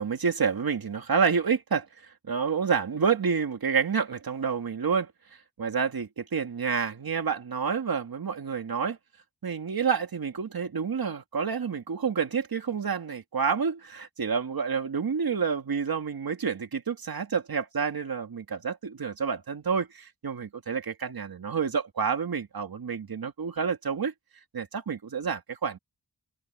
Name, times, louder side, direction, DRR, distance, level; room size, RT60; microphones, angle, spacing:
voice 1, 0.0-5.1 5.6-9.0 9.4-24.1 24.5-25.8, right 6 dB, 55° right, 2.2 m, -29 dB
open air
wide cardioid pair, 110°, 42 cm